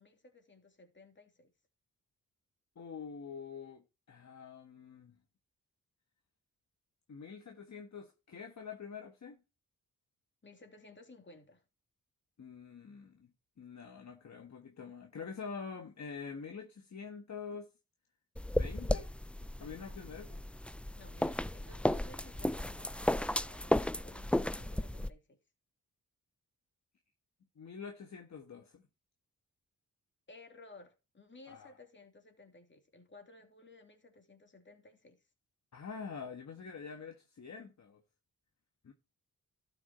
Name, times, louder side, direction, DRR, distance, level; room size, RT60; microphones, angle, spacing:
voice 1, 0.0-1.5 10.4-11.6 20.9-23.7 24.0-25.4 30.3-35.2, left 2 dB, 35° left, 2.9 m, -57 dB
voice 2, 2.8-5.2 7.1-9.4 12.4-13.3 13.6-17.7 18.5-19.1 19.6-20.4 27.6-28.8 31.5-31.7 35.7-38.0 38.8-38.9, left 5 dB, 55° left, 1.4 m, -46 dB
sound 1, 18.4-25.1, left 1 dB, 5° left, 0.4 m, -34 dB
12.5 x 6.1 x 4.2 m
cardioid pair, 70°, 34 cm